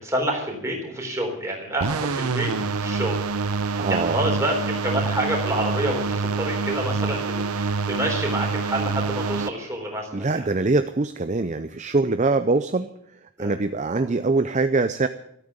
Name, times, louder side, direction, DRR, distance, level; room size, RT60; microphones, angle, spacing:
voice 1, 0.0-10.5 13.4-13.6 13.9-14.1, right 1 dB, 15° right, 0 dB, 3.8 m, -28 dB
sound 1, 1.8-9.5, right 4 dB, 80° right, 0.8 m, -26 dB
voice 2, 3.8-4.2 10.1-12.9 13.4-15.1, right 3 dB, 30° right, 11 dB, 0.5 m, -23 dB
13.5 x 8.8 x 9.5 m, 0.74 s
head